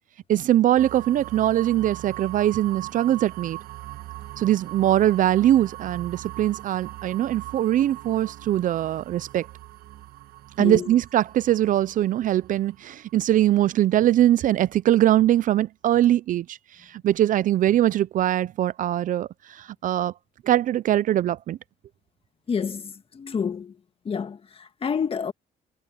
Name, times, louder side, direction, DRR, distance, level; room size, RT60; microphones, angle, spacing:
voice 1, 0.3-3.6 4.4-9.5 10.6-16.6 16.9-20.1 20.4-21.6, right 12 dB, 50° right, 0.5 m, -22 dB
sound 1, 0.8-14.6, right 17 dB, 70° right, 1.3 m, -41 dB
voice 2, 10.6-10.9 22.5-23.8 24.0-25.3, left 6 dB, 35° left, 1.7 m, -29 dB
cardioid pair, 110°, 17 cm